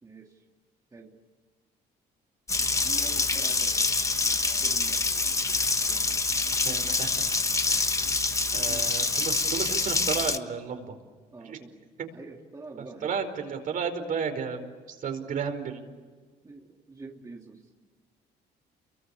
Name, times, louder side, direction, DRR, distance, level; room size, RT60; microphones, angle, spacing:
voice 1, 0.0-0.4 0.9-1.2 2.6-3.9 4.6-5.1 8.7-8.9 11.3-11.7 12.0-13.2 16.4-17.7, right 3 dB, 20° right, 1 dB, 2.6 m, -46 dB
Water tap faucet, 2.5-10.4, left 3 dB, 20° left, 1.4 m, -26 dB
voice 2, 6.6-7.1 7.7-7.9 8.5-10.9 11.4-11.6 13.0-15.8, right 6 dB, 55° right, 5 dB, 4.9 m, -33 dB
30.0 x 23.5 x 8.4 m, 1.5 s
cardioid pair, 110°, 17 cm